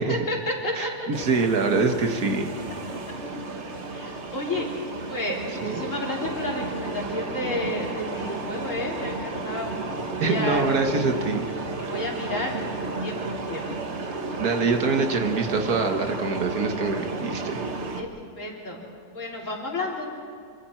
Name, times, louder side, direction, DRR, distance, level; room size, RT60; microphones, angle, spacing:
voice 1, 0.0-0.9 3.9-4.7 5.1-9.8 10.1-10.7 11.8-13.7 18.0-18.8 19.1-20.1, left 1 dB, 50° left, -2 dB, 3.8 m, -31 dB
voice 2, 0.7-2.5 5.6-5.8 10.2-11.5 14.4-17.7, right 4 dB, 65° right, 5 dB, 1.8 m, -24 dB
sound 1, 1.1-18.0, right 3 dB, 45° right, 1.5 m, -33 dB
26.0 x 25.0 x 4.5 m, 2.4 s
omnidirectional pair, 1.7 m